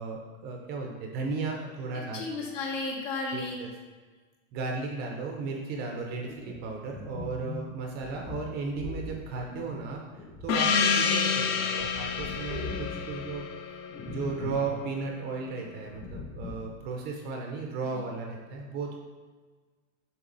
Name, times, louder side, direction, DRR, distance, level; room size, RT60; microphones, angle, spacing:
voice 1, 0.0-2.2 3.3-3.7 4.5-13.4 14.1-19.0, right 4 dB, 25° right, 1 dB, 0.6 m, -35 dB
voice 2, 1.9-3.6 18.0-18.1, left 3 dB, 65° left, -2 dB, 1.9 m, -34 dB
sound 1, 6.2-11.2 11.6-13.4 13.9-14.7 15.0-15.1 15.8-16.7, left 4 dB, 30° left, 1.3 m, -41 dB
Gong, 10.5-14.8, left 6 dB, 45° left, 0.6 m, -29 dB
7.1 x 4.0 x 3.9 m, 1.4 s
supercardioid pair, 160°, 40 cm